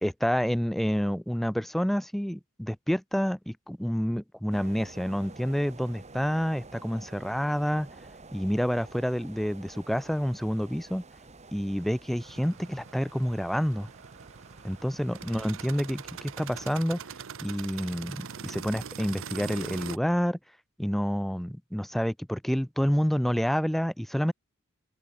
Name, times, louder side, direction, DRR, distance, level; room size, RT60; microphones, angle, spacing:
voice 1, 0.0-7.9 8.3-11.0 11.5-13.9 14.6-17.0 17.4-20.4 20.8-24.3, equal, ahead, 0.4 m, -28 dB
sound 1, 4.5-16.7, right 3 dB, 30° right, 1.8 m, -50 dB
sound 2, 12.2-20.0, right 7 dB, 65° right, 0.8 m, -42 dB
open air
head